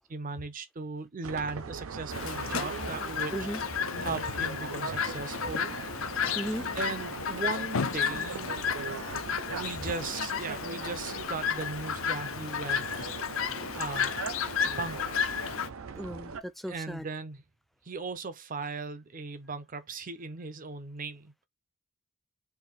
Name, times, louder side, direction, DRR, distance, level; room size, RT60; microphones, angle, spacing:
voice 1, 0.0-3.3 4.0-5.7 6.7-8.5 9.5-13.4 13.8-14.2 14.8-15.2 16.7-17.4 17.8-21.5, right 4 dB, 40° right, 0.6 m, -38 dB
sound 1, 1.2-16.4, right 5 dB, 85° right, 0.6 m, -40 dB
Chirp tweet, 2.1-15.7, left 7 dB, 75° left, 0.7 m, -33 dB
voice 2, 6.3-6.7 15.9-17.1, equal, ahead, 0.3 m, -36 dB
4.7 x 2.6 x 4.0 m
head